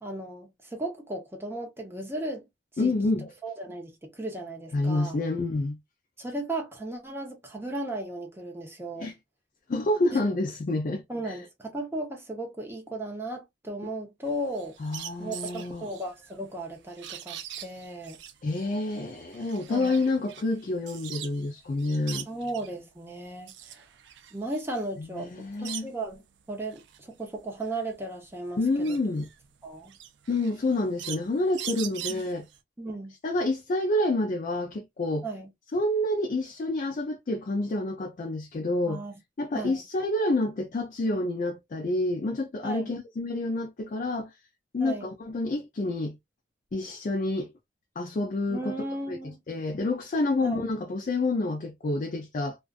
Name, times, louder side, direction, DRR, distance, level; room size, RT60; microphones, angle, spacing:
voice 1, 0.0-2.5 2.7-2.9 3.2-5.2 6.2-9.1 10.1-10.3 11.1-14.7 15.2-18.2 19.7-20.0 22.3-23.8 24.3-25.3 25.6-26.2 26.5-28.6 28.9-29.0 29.6-30.0 32.1-32.2 32.8-33.1 35.2-35.5 38.9-39.2 39.5-39.8 42.6-43.0 44.8-45.1 48.5-49.4 50.4-50.6, right 1 dB, 15° right, 0.6 m, -36 dB
voice 2, 2.8-3.3 4.7-5.8 9.0-9.1 9.7-11.4 14.8-15.9 18.4-22.3 25.0-25.9 28.6-29.3 30.3-32.5 33.2-35.3 35.7-39.0 39.4-44.3 44.7-46.2 46.7-47.5 48.0-48.7 49.1-52.6, left 2 dB, 45° left, 0.4 m, -28 dB
sound 1, 14.3-21.5 21.8-22.8 23.2-26.2 26.6-32.6, right 10 dB, 65° right, 0.4 m, -42 dB
2.4 x 2.3 x 2.3 m
head